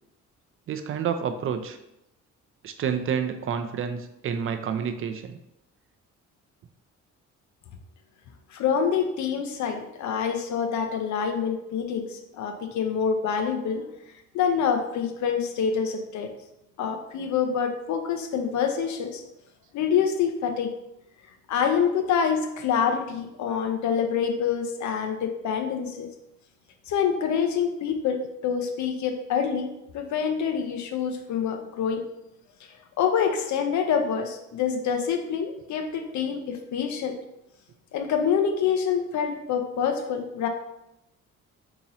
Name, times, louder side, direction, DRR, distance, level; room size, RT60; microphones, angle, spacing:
voice 1, 0.7-1.8 2.6-5.4, right 7 dB, 45° right, 8 dB, 0.4 m, -29 dB
voice 2, 8.5-13.8 14.3-16.3 16.8-19.2 19.7-20.7 21.5-26.1 26.9-29.7 29.9-32.0 33.0-37.2 37.9-40.5, left 7 dB, 70° left, 5 dB, 0.6 m, -26 dB
2.9 x 2.8 x 4.0 m, 0.85 s
cardioid pair, 90°, 30 cm